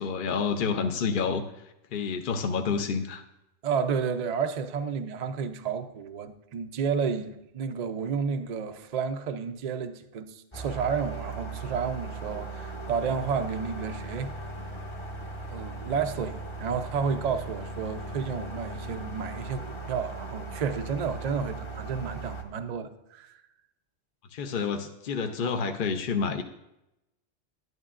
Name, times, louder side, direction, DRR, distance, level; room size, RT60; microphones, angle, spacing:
voice 1, 0.0-1.4 1.9-3.2 24.3-26.4, left 5 dB, 55° left, 0.7 m, -29 dB
voice 2, 3.6-14.3 15.5-23.4, right 6 dB, 50° right, 0.5 m, -31 dB
sound 1, 10.5-22.4, right 3 dB, 25° left, 0.9 m, -38 dB
11.0 x 11.0 x 2.5 m
omnidirectional pair, 1.2 m